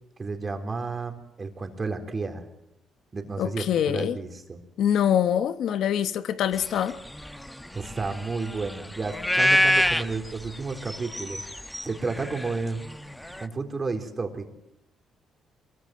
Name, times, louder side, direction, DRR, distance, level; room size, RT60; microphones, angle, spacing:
voice 1, 0.2-2.5 3.1-4.6 7.7-11.4 11.8-12.8 13.4-14.5, right 4 dB, 30° right, 4.0 m, -32 dB
voice 2, 3.4-4.2 4.8-7.0, left 9 dB, 75° left, 1.1 m, -24 dB
sound 1, 6.6-13.5, left 1 dB, 5° left, 1.0 m, -27 dB
23.5 x 23.0 x 7.8 m
cardioid pair, 90°, 0 cm